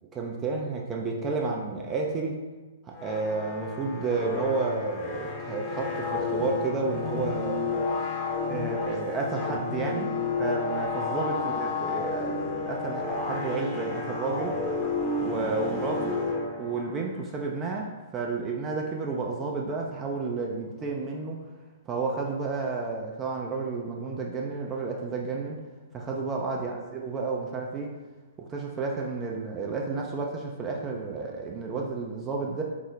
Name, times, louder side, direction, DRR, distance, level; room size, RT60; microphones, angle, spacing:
voice 1, 0.1-2.4 2.8-7.9 8.4-14.6 15.2-16.2 16.6-21.4 21.9-25.6 25.9-27.9 28.4-32.6, right 4 dB, 20° right, 0 dB, 0.5 m, -31 dB
sound 1, 2.9-17.1, left 4 dB, 25° left, 0.7 m, -31 dB
4.8 x 2.0 x 3.8 m, 1.2 s
figure-of-eight pair, 115°, 0 cm